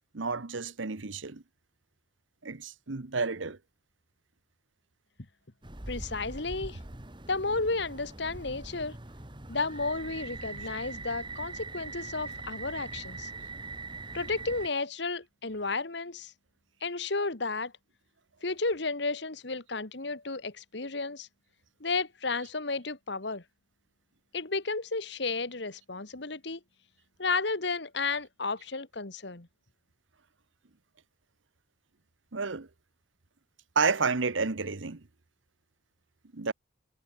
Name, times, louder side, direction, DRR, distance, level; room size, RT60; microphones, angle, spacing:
voice 1, 0.1-1.4 2.4-3.6 32.3-32.7 33.7-35.0 36.3-36.5, right 4 dB, 75° right, 1.1 m, -30 dB
sound 1, 5.6-14.7, right 3 dB, 25° right, 1.9 m, -42 dB
voice 2, 5.9-6.8 7.3-9.0 9.5-13.3 14.1-16.3 16.8-17.7 18.4-21.3 21.8-23.4 24.3-26.6 27.2-29.5, left 3 dB, 60° left, 1.7 m, -32 dB
head